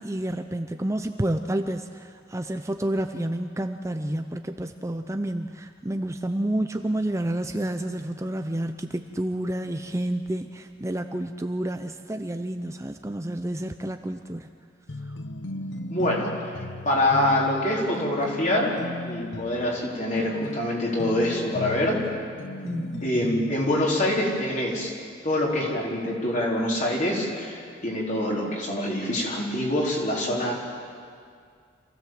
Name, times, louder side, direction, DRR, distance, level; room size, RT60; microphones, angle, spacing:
voice 1, 0.0-14.5 22.6-23.0, right 1 dB, 15° right, 7 dB, 0.6 m, -29 dB
sound 1, 14.9-23.8, left 1 dB, 85° left, 0.8 m, -37 dB
voice 2, 15.9-16.6 16.8-18.8 19.0-22.0 23.0-24.9 25.2-30.5, left 1 dB, 45° left, -3 dB, 4.2 m, -25 dB
27.0 x 16.0 x 7.7 m, 2.2 s
head